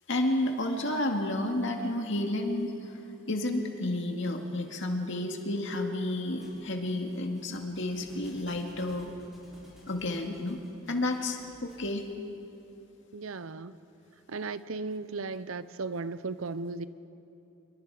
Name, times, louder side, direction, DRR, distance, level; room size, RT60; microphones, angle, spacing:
voice 1, 0.1-3.0 3.3-9.1 9.9-10.6 10.9-12.1, left 1 dB, 60° left, 3 dB, 2.1 m, -31 dB
Thump thud, 6.4-12.0, equal, ahead, 7.1 m, -55 dB
voice 2, 13.1-13.8 14.3-16.9, right 3 dB, 70° right, 15 dB, 0.7 m, -36 dB
26.5 x 23.0 x 4.9 m, 3.0 s
head